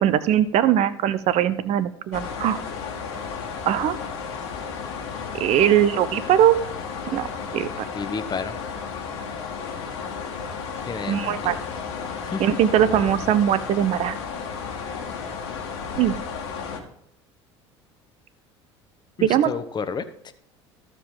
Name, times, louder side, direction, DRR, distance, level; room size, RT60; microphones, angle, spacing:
voice 1, 0.0-2.6 3.7-4.0 5.3-6.6 7.1-7.3 7.5-7.7 11.1-11.6 12.4-14.2 16.0-16.1 19.2-19.5, right 10 dB, 50° right, 15 dB, 0.6 m, -20 dB
sound 1, 2.1-16.8, left 5 dB, 70° left, 1.4 m, -33 dB
voice 2, 7.9-8.6 10.9-11.6 12.2-12.4 19.2-20.3, left 5 dB, 30° left, 11 dB, 0.9 m, -31 dB
14.5 x 5.0 x 3.8 m, 0.72 s
hypercardioid pair, 65°, 14 cm